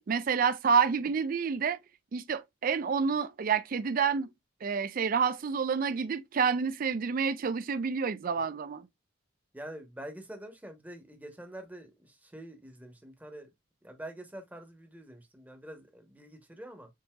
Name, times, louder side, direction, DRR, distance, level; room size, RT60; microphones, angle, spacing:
voice 1, 0.1-1.8 2.1-4.3 4.6-8.9, right 6 dB, 45° right, 0.4 m, -28 dB
voice 2, 9.5-13.5 13.8-16.9, right 1 dB, 10° right, 0.9 m, -46 dB
7.3 x 2.7 x 2.3 m
head